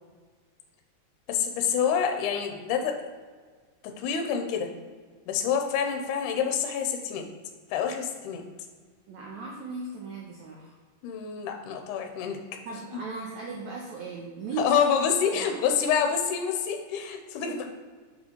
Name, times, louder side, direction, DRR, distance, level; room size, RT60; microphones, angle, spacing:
voice 1, 1.3-2.9 3.8-4.7 5.3-7.3 7.7-8.4 11.0-12.4 14.6-17.7, left 7 dB, 80° left, 4 dB, 2.1 m, -27 dB
voice 2, 9.1-10.7 12.7-15.1 15.3-15.6 17.5-17.7, right 4 dB, 70° right, -2 dB, 1.9 m, -37 dB
6.6 x 6.1 x 3.1 m, 1.5 s
omnidirectional pair, 3.9 m